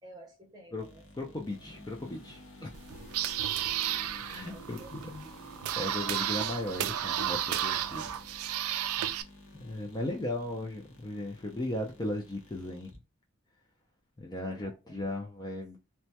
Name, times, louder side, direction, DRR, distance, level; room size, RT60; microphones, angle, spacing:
voice 1, 0.0-1.6 3.9-5.4 9.0-9.1 14.4-15.2, right 2 dB, 20° right, 0.7 m, -54 dB
sound 1, 0.8-13.0, left 1 dB, 70° left, 0.7 m, -52 dB
voice 2, 1.1-2.7 4.3-5.3 5.8-8.0 8.8-9.2 9.5-13.0 14.2-15.8, left 1 dB, 20° left, 0.3 m, -37 dB
sound 2, 2.7-9.2, right 11 dB, 85° right, 0.3 m, -33 dB
2.2 x 2.1 x 2.7 m
head